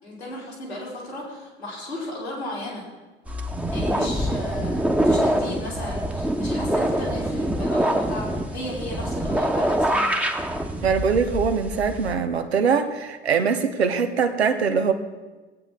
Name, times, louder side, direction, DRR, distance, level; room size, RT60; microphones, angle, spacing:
voice 1, 0.0-2.9 3.7-10.2, left 1 dB, 90° left, -5 dB, 3.2 m, -35 dB
sound 1, 3.3-12.1, right 1 dB, 5° right, 1.1 m, -25 dB
voice 2, 10.8-14.9, right 6 dB, 85° right, 7 dB, 0.9 m, -22 dB
17.0 x 8.5 x 3.7 m, 1.2 s
figure-of-eight pair, 60°, 31 cm